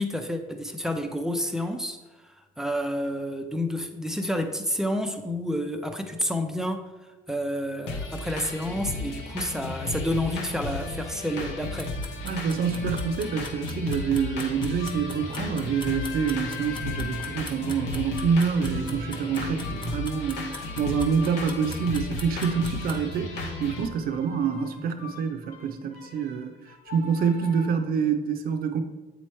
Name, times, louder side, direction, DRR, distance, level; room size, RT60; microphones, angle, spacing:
voice 1, 0.0-2.0 2.2-6.8 7.3-11.9, equal, 5° right, 5 dB, 0.5 m, -29 dB
sound 1, 7.9-23.9, left 2 dB, 90° left, 0.9 m, -34 dB
sound 2, 10.6-13.5 14.5-27.7, left 6 dB, 65° left, 1.2 m, -44 dB
sound 3, 11.8-23.0, left 3 dB, 25° left, 0.8 m, -42 dB
voice 2, 12.2-26.5 26.9-28.8, right 6 dB, 60° right, 7 dB, 0.6 m, -27 dB
8.1 x 3.1 x 4.4 m, 1.2 s
cardioid pair, 110°, 17 cm